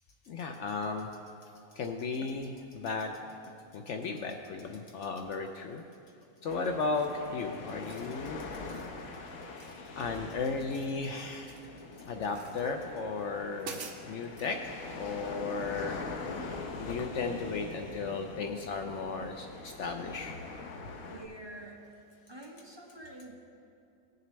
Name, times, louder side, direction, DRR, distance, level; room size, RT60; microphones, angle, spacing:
voice 1, 0.2-1.1 1.7-3.2 3.7-5.8 6.4-8.4 9.9-11.7 12.0-16.0 16.8-20.4, left 4 dB, 65° left, 4 dB, 0.8 m, -35 dB
sound 1, 6.4-21.3, left 3 dB, 85° left, 1.3 m, -43 dB
sound 2, 6.9-7.3 7.7-8.1 8.5-8.9 9.6-10.2 10.5-11.7 12.3-12.7 13.2-13.3 13.6-14.5, right 4 dB, 60° right, 1.1 m, -48 dB
voice 2, 21.0-21.8 22.3-23.3, right 1 dB, 20° right, -4 dB, 1.3 m, -47 dB
18.5 x 6.6 x 3.2 m, 2.5 s
omnidirectional pair, 1.5 m